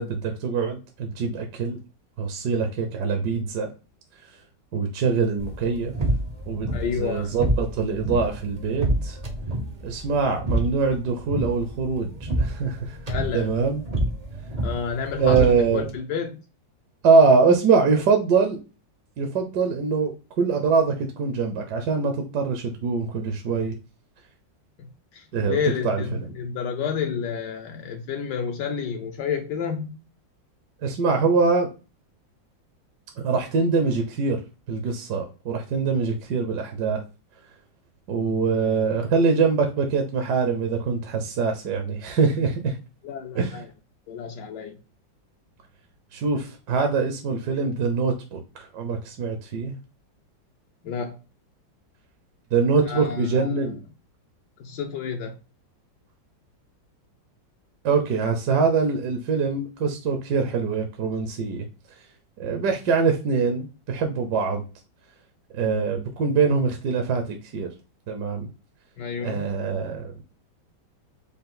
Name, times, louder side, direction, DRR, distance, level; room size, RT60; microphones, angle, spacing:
voice 1, 0.0-1.8 2.2-3.7 4.7-5.9 6.5-6.7 7.0-9.2 9.8-12.1 12.4-13.0 13.3-13.8 15.2-15.8 17.0-18.6 19.2-23.8 25.3-25.6 25.8-26.3 30.8-31.7 33.2-34.4 34.7-37.0 38.1-42.8 43.3-43.6 46.1-49.7 52.5-53.8 57.8-61.6 62.4-64.6 65.5-67.7 68.1-68.5 69.2-70.1, right 5 dB, 65° right, 1.2 m, -23 dB
sound 1, 5.4-16.0, right 1 dB, 45° right, 0.5 m, -29 dB
voice 2, 6.7-7.3 13.1-13.5 14.6-16.4 25.1-30.0 43.0-43.7 44.1-44.7 50.8-51.2 52.8-53.7 54.6-55.3 69.0-69.4, left 6 dB, 75° left, 1.2 m, -30 dB
5.2 x 2.4 x 3.7 m
omnidirectional pair, 2.0 m